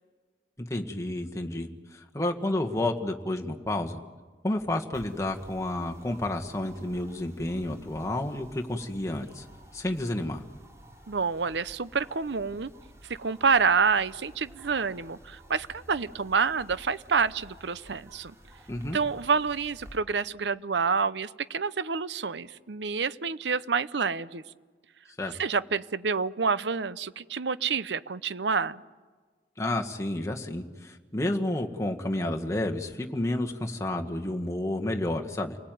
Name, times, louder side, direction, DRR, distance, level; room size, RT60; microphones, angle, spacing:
voice 1, 0.7-4.0 4.4-9.5 9.7-10.4 18.7-19.0 25.2-25.3 29.6-35.6, left 1 dB, 15° left, 2 dB, 1.7 m, -30 dB
sound 1, 4.9-20.0, equal, 15° right, 3.6 m, -52 dB
voice 2, 11.1-12.7 13.0-18.3 18.9-24.4 25.3-28.8, right 5 dB, 75° right, 17 dB, 0.7 m, -28 dB
30.0 x 20.0 x 9.3 m, 1.5 s
head